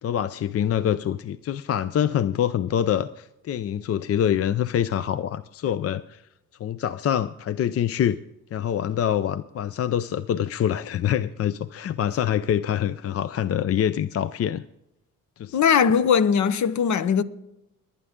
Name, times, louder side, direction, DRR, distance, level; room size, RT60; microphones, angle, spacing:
voice 1, 0.0-6.3 6.6-8.2 8.5-14.6 15.4-15.6, left 10 dB, 45° left, 0.5 m, -25 dB
voice 2, 15.5-17.2, left 7 dB, 60° left, 0.9 m, -20 dB
21.0 x 9.8 x 3.7 m
cardioid pair, 95°, 32 cm